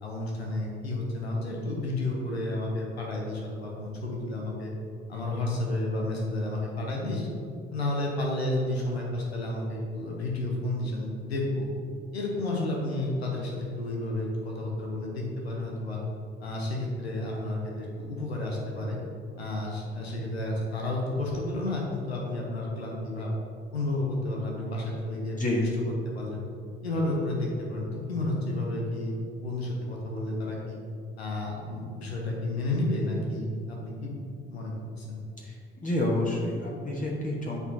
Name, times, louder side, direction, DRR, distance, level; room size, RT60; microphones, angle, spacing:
voice 1, 0.0-4.7 5.1-7.3 7.7-11.7 12.1-16.0 16.4-19.0 19.4-23.3 23.7-25.4 25.8-26.4 26.8-30.8 31.2-35.2, left 2 dB, 90° left, -1 dB, 0.8 m, -31 dB
voice 2, 35.8-37.6, left 1 dB, 25° left, -4 dB, 1.3 m, -28 dB
8.0 x 4.6 x 2.8 m, 2.4 s
figure-of-eight pair, 50°, 31 cm